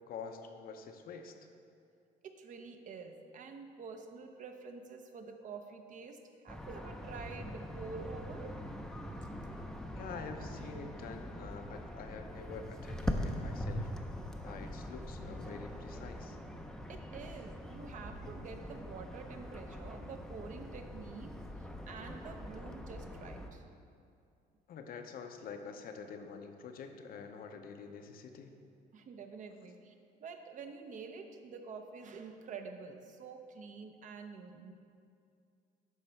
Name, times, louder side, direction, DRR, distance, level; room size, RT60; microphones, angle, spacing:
voice 1, 0.0-1.4 9.9-13.9 14.4-16.4 24.7-28.5, left 5 dB, 60° left, 5 dB, 0.7 m, -47 dB
voice 2, 2.2-6.2 6.4-8.6 16.9-21.4 21.9-23.7 28.9-29.9 30.2-34.7, right 4 dB, 50° right, 6 dB, 0.7 m, -47 dB
sound 1, 6.5-23.5, equal, 5° left, 0.5 m, -42 dB
11.0 x 3.9 x 4.5 m, 2.4 s
cardioid pair, 110°, 17 cm